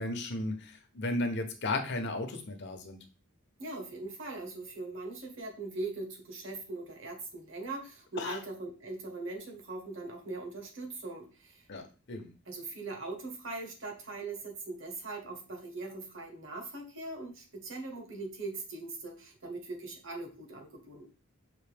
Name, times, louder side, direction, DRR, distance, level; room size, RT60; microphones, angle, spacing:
voice 1, 0.0-3.0 8.2-8.4 11.7-12.3, left 2 dB, 55° left, 5 dB, 0.8 m, -34 dB
voice 2, 3.6-11.7 12.4-21.1, right 3 dB, 60° right, 2 dB, 1.3 m, -41 dB
5.8 x 2.7 x 3.4 m, 0.34 s
head